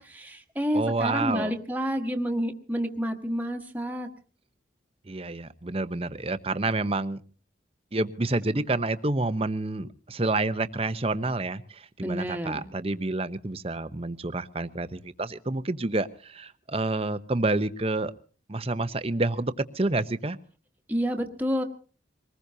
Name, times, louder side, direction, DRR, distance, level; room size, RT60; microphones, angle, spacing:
voice 1, 0.0-4.1 12.0-12.6 20.9-21.6, equal, 10° right, 3 dB, 1.4 m, -29 dB
voice 2, 0.7-1.5 5.1-7.2 7.9-18.1 18.5-20.4, right 2 dB, 30° right, 12 dB, 0.8 m, -28 dB
23.5 x 20.0 x 2.8 m, 0.40 s
head